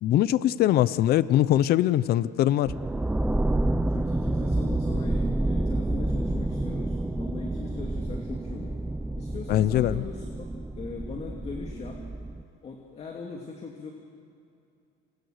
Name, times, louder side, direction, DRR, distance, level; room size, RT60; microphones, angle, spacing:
voice 1, 0.0-2.7 9.5-10.0, left 13 dB, 55° left, 16 dB, 0.7 m, -22 dB
sound 1, 2.7-12.4, right 2 dB, 5° right, 0.6 m, -29 dB
voice 2, 3.9-8.8 9.1-10.5 10.8-12.0 12.6-13.9, left 4 dB, 35° left, 1 dB, 2.5 m, -40 dB
29.0 x 28.0 x 6.6 m, 2.5 s
cardioid pair, 145°, 19 cm